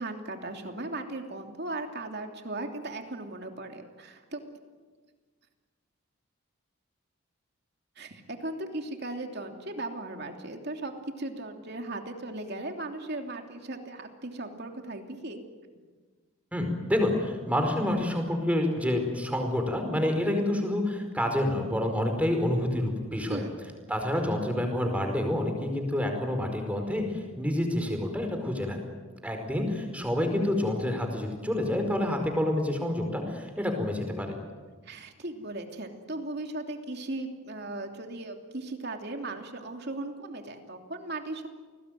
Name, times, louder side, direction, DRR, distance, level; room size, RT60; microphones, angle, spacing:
voice 1, 0.0-4.4 8.0-15.4 23.3-23.6 34.8-41.5, right 2 dB, 50° right, 4 dB, 3.0 m, -37 dB
voice 2, 16.5-23.4 23.9-28.8 29.2-34.3, left 1 dB, 5° right, 4 dB, 4.8 m, -28 dB
30.0 x 20.5 x 9.3 m, 1.4 s
head